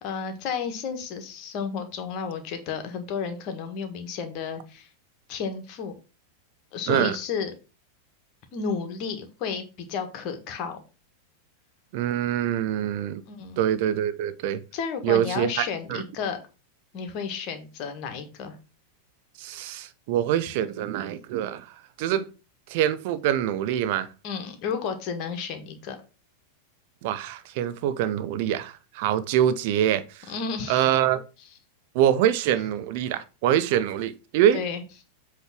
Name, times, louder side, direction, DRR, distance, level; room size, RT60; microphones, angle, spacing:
voice 1, 0.0-4.9 5.3-5.9 6.7-7.5 8.5-10.8 13.3-13.6 14.7-16.4 16.9-18.6 24.2-26.0 30.3-30.9 34.5-34.8, left 6 dB, 40° left, 1.5 m, -32 dB
voice 2, 11.9-13.2 13.6-14.6 15.0-16.0 19.4-21.7 22.0-22.3 22.7-24.1 27.0-30.3 30.7-31.2 31.9-34.6, right 11 dB, 50° right, 0.6 m, -25 dB
7.9 x 3.3 x 5.8 m
figure-of-eight pair, 90°, 0 cm